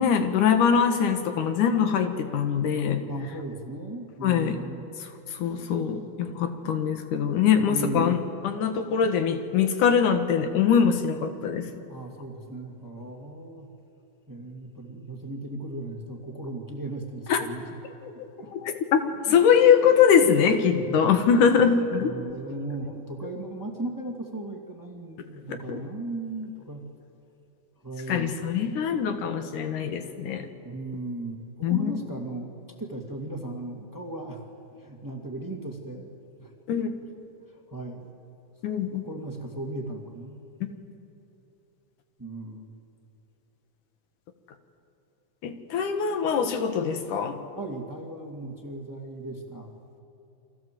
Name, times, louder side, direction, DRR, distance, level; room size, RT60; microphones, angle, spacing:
voice 1, 0.0-3.0 4.2-4.6 5.3-11.7 17.3-17.4 18.0-18.1 18.5-22.1 25.7-25.8 28.1-30.5 31.6-31.9 36.7-36.9 38.6-39.0 45.4-47.4, left 7 dB, 85° left, 7 dB, 3.1 m, -23 dB
voice 2, 3.1-4.9 7.7-8.3 11.9-13.7 14.3-17.8 18.1-18.5 20.7-21.1 21.6-21.7 22.0-26.8 27.8-28.4 30.6-32.5 32.8-34.4 34.8-36.1 36.4-36.5 36.9-37.0 37.5-38.1 38.9-40.4 42.2-42.7 47.5-49.7, right 2 dB, 5° right, 2 dB, 2.0 m, -37 dB
29.5 x 23.5 x 7.8 m, 3.0 s
omnidirectional pair, 3.5 m